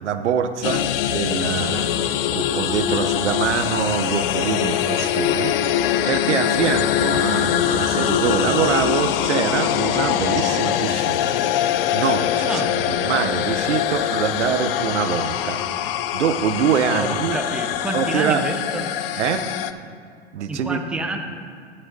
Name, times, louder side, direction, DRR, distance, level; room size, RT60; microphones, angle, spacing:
voice 1, 0.0-11.4 11.9-17.4 17.9-18.5 19.2-19.5 20.3-20.8, right 7 dB, 85° right, 10 dB, 0.6 m, -24 dB
sound 1, 0.6-19.7, left 10 dB, 55° left, 0.5 m, -23 dB
voice 2, 12.5-12.8 17.0-18.9 20.5-21.2, right 2 dB, 5° right, 4 dB, 0.5 m, -28 dB
13.5 x 7.6 x 2.6 m, 2.1 s
hypercardioid pair, 100°, 34 cm